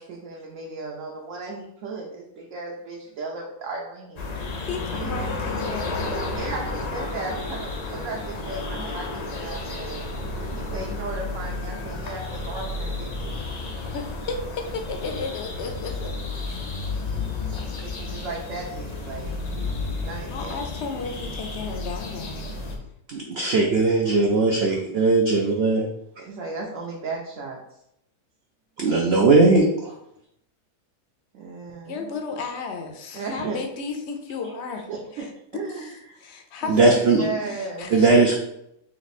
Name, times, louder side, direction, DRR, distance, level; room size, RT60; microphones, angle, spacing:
voice 1, 0.0-4.7 5.0-5.2 6.3-10.0 10.3-13.3 17.7-20.6 24.7-24.8 25.3-25.5 26.2-27.8 31.3-32.1 33.1-33.6 34.9-36.2 36.6-37.9, right 3 dB, 65° right, -1 dB, 0.9 m, -35 dB
sound 1, 4.2-22.8, left 3 dB, 85° left, 0.3 m, -32 dB
voice 2, 4.7-6.2 13.9-16.1 16.4-16.6 20.3-22.5 31.9-34.9 35.7-35.9 36.2-36.8 37.4-38.1, left 4 dB, 60° left, 4 dB, 0.7 m, -33 dB
voice 3, 23.1-25.8 28.8-29.9 36.7-37.2 37.9-38.4, right 3 dB, 80° right, 1 dB, 0.5 m, -19 dB
3.3 x 3.0 x 4.1 m, 0.78 s
omnidirectional pair, 1.7 m